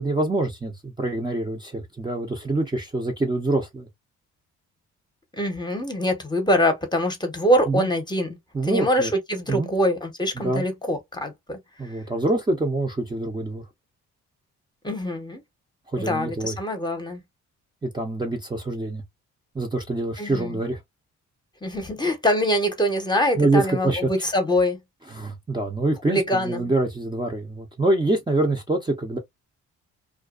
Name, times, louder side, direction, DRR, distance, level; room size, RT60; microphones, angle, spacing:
voice 1, 0.0-3.9 7.7-7.9 8.5-9.1 9.5-9.7 10.4-10.6 11.8-13.6 15.9-16.6 17.8-19.0 19.5-20.8 23.4-24.0 25.1-29.2, right 2 dB, 15° right, 0.6 m, -25 dB
voice 2, 5.4-8.4 8.6-11.6 14.8-15.4 16.1-17.2 20.2-20.6 21.6-24.8 26.1-26.7, equal, 15° left, 0.8 m, -24 dB
2.4 x 2.2 x 2.3 m
cardioid pair, 90°, 30 cm